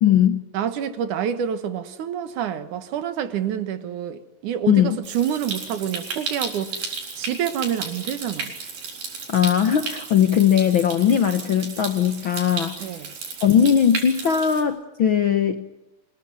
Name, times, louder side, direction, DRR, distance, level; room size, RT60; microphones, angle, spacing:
voice 1, 0.0-0.4 4.7-5.0 9.3-12.7 13.4-15.6, left 9 dB, 75° left, 1.1 m, -19 dB
voice 2, 0.5-6.9 7.2-8.5 12.8-13.1, right 9 dB, 70° right, 2.8 m, -27 dB
Stream, 5.0-14.6, right 4 dB, 85° right, 5.7 m, -34 dB
26.0 x 21.0 x 9.5 m
omnidirectional pair, 3.8 m